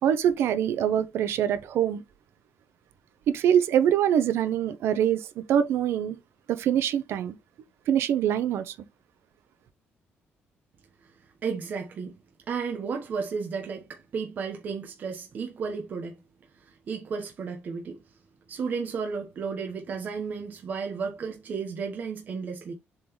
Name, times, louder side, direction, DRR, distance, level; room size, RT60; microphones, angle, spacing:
voice 1, 0.0-2.0 3.3-6.2 6.5-7.4 7.9-8.7, right 9 dB, 75° right, 0.9 m, -24 dB
voice 2, 11.4-12.1 12.5-16.2 16.6-18.0 18.5-22.7, right 5 dB, 45° right, 1.2 m, -33 dB
7.5 x 4.0 x 3.2 m
cardioid pair, 170°, 4 cm